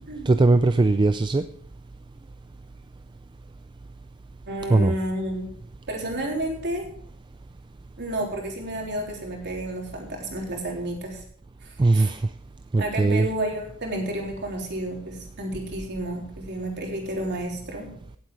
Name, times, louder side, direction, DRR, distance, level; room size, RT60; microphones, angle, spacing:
voice 1, 0.3-1.4 4.7-4.9 11.8-12.2 12.7-13.3, right 2 dB, 20° right, 10 dB, 0.4 m, -19 dB
voice 2, 4.5-5.5 5.9-6.9 8.0-11.2 11.6-12.1 12.8-17.9, right 1 dB, 50° right, 0 dB, 3.5 m, -31 dB
17.0 x 8.1 x 4.7 m, 0.63 s
head